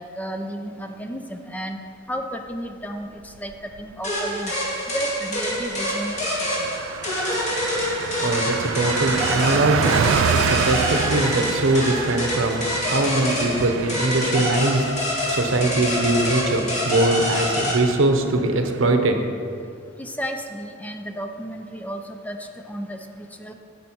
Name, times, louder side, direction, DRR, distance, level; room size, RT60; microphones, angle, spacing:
voice 1, 0.0-1.8 2.1-4.5 4.9-6.2 20.0-22.4 22.7-23.5, equal, 10° left, 5 dB, 0.5 m, -33 dB
Car passing by, 3.3-3.9 4.3-4.4 4.7-19.0, right 8 dB, 70° right, 0.3 m, -29 dB
sound 1, 4.0-17.7, equal, 40° left, 2.1 m, -26 dB
voice 2, 8.2-9.9 10.3-14.8 15.3-19.2, right 2 dB, 90° right, 5 dB, 0.9 m, -22 dB
9.5 x 7.4 x 4.5 m, 2.3 s
head